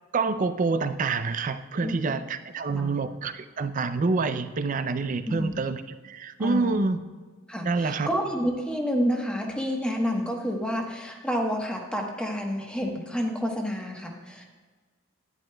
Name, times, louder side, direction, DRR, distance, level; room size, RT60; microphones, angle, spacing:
voice 1, 0.1-7.0 7.6-8.1, right 4 dB, 40° right, 11 dB, 0.4 m, -27 dB
voice 2, 5.2-5.6 6.4-6.9 7.5-14.4, equal, 5° left, 1 dB, 1.1 m, -29 dB
11.0 x 10.5 x 2.2 m, 1.4 s
head